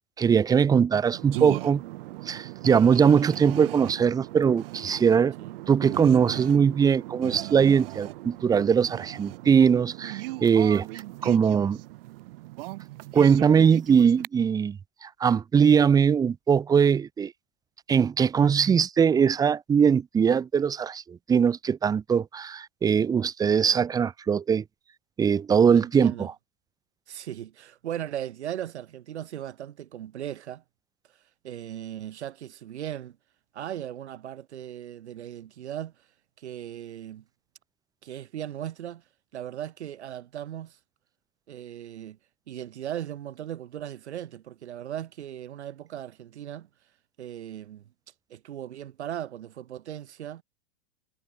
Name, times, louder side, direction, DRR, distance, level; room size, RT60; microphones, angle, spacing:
voice 1, 0.2-1.8 2.3-5.3 5.7-11.8 13.1-17.3 17.9-24.6 25.2-26.3, right 7 dB, 10° right, 0.6 m, -21 dB
sound 1, 1.1-14.3, right 19 dB, 55° right, 0.7 m, -38 dB
voice 2, 25.7-26.3 27.1-30.6 31.4-33.2 33.5-35.9 36.4-37.2 38.0-39.0 39.3-40.8 41.5-42.2 42.5-46.7 47.2-47.8 48.3-50.4, right 11 dB, 80° right, 2.3 m, -37 dB
hypercardioid pair, 125°, 33 cm